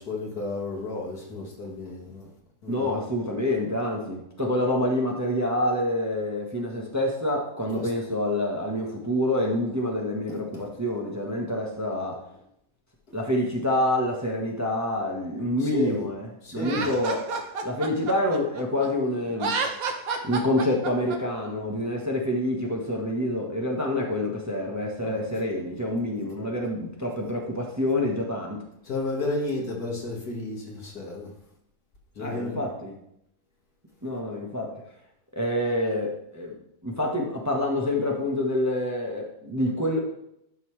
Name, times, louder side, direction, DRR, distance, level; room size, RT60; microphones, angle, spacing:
voice 1, 0.0-2.3 2.6-3.0 7.8-7.9 10.3-10.6 15.6-16.0 16.4-16.9 25.0-25.2 28.8-31.3 32.2-32.7, left 2 dB, 75° left, -2 dB, 2.4 m, -32 dB
voice 2, 2.7-12.2 13.1-17.2 17.6-19.5 20.2-28.6 32.2-32.9 34.0-34.7 35.3-36.5 36.8-40.0, left 1 dB, 10° right, -1 dB, 1.1 m, -27 dB
Laughter, 16.6-18.9 19.3-21.2, right 4 dB, 65° right, 1.4 m, -30 dB
11.5 x 5.5 x 3.2 m, 0.77 s
omnidirectional pair, 1.6 m